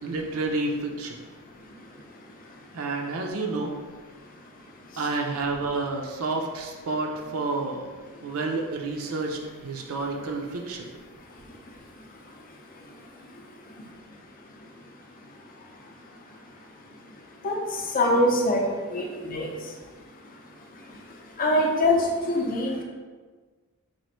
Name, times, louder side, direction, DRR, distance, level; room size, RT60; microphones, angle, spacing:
voice 1, 0.0-1.2 2.7-3.7 5.0-7.9 8.2-10.9, right 3 dB, 70° right, 1 dB, 0.4 m, -29 dB
voice 2, 17.9-19.5 21.4-22.8, left 1 dB, 40° left, 0 dB, 0.6 m, -23 dB
3.0 x 2.5 x 4.2 m, 1.4 s
head